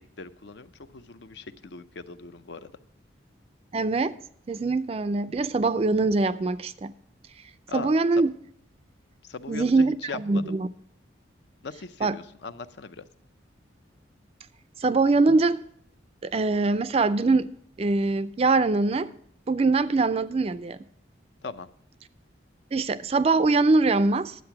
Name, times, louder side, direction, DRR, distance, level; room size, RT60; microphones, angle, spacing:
voice 1, 0.0-2.7 7.7-7.9 9.2-10.4 11.6-13.0 21.4-21.7, left 4 dB, 65° left, 0.5 m, -39 dB
voice 2, 3.7-4.1 4.5-6.9 7.7-8.3 9.5-10.7 12.0-12.2 14.8-15.6 16.2-17.5 17.8-19.1 19.5-20.8 22.7-24.3, right 3 dB, 30° right, 0.3 m, -23 dB
10.5 x 8.1 x 5.8 m
head